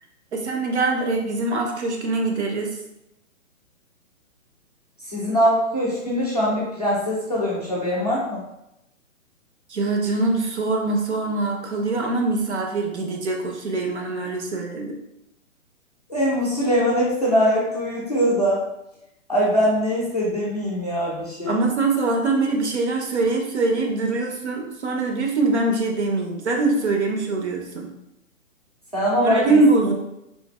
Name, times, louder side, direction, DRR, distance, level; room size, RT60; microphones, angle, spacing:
voice 1, 0.3-2.8 9.7-15.0 21.5-27.9 29.2-29.9, right 3 dB, 55° right, 2 dB, 0.6 m, -23 dB
voice 2, 5.1-8.4 16.1-18.6 19.3-21.6 28.9-29.6, equal, 30° left, -6 dB, 0.4 m, -22 dB
3.2 x 2.3 x 2.2 m, 0.85 s
hypercardioid pair, 175°, 40 cm